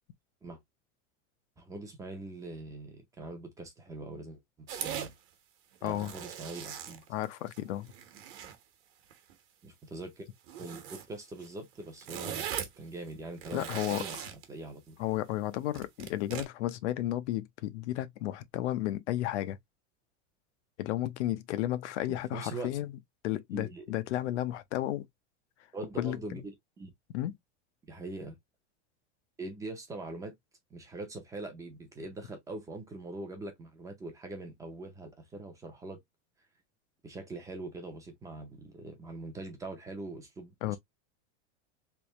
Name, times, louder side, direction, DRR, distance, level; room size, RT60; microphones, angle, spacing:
voice 1, 1.6-5.1 5.8-7.0 9.6-10.3 10.6-15.0 22.1-22.7 23.5-23.8 25.7-26.9 27.8-28.4 29.4-30.3 30.7-36.0 37.0-40.8, right 2 dB, 10° right, 0.5 m, -43 dB
sound 1, 4.7-5.1 5.7-7.6 7.9-8.6 9.1-9.3 10.4-11.1 11.4-11.5 11.8-12.8 13.3-14.4 15.7-16.4, right 9 dB, 50° right, 1.1 m, -40 dB
voice 2, 5.8-6.1 7.1-7.9 13.5-14.0 15.0-19.6 20.8-22.9 23.2-25.1 26.0-26.2 27.1-27.3 40.6-40.8, left 14 dB, 80° left, 0.7 m, -33 dB
3.4 x 3.1 x 2.9 m
supercardioid pair, 170°, 34 cm